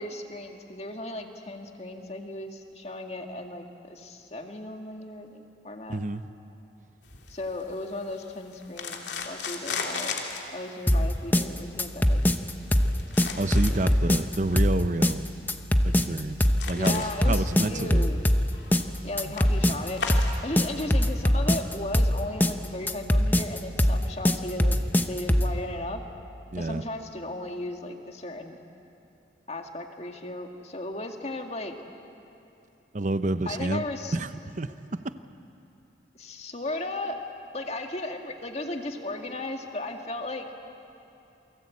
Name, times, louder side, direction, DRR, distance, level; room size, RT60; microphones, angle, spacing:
voice 1, 0.0-6.0 7.3-10.1 10.5-12.2 13.8-13.9 16.7-18.2 19.0-20.0 20.4-24.8 25.1-26.0 26.6-28.6 29.5-31.8 33.5-34.2 36.1-37.2 37.5-40.5, left 2 dB, 35° left, 4 dB, 2.0 m, -36 dB
voice 2, 5.9-6.3 13.2-15.3 15.8-18.1 19.3-19.4 19.7-19.9 26.5-26.8 32.9-33.8 34.1-34.7 35.0-35.1, right 2 dB, 45° right, 12 dB, 0.8 m, -29 dB
sound 1, 7.0-20.7, left 4 dB, 75° left, 2.8 m, -39 dB
sound 2, 10.9-25.6, equal, 10° left, 0.9 m, -22 dB
28.5 x 23.0 x 8.5 m, 2.8 s
head